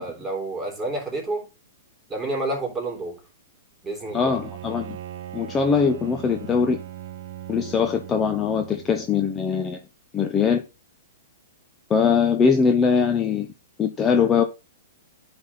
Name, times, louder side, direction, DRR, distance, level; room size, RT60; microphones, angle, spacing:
voice 1, 0.0-1.5 2.1-3.2 3.8-4.3, right 2 dB, 10° right, 3.3 m, -29 dB
Bowed string instrument, 4.0-9.4, right 11 dB, 60° right, 0.9 m, -39 dB
voice 2, 4.1-5.0 5.3-6.8 7.5-9.8 10.1-10.6 11.9-13.5 13.8-14.4, left 6 dB, 20° left, 0.7 m, -21 dB
9.6 x 3.6 x 4.1 m
hypercardioid pair, 125°, 0 cm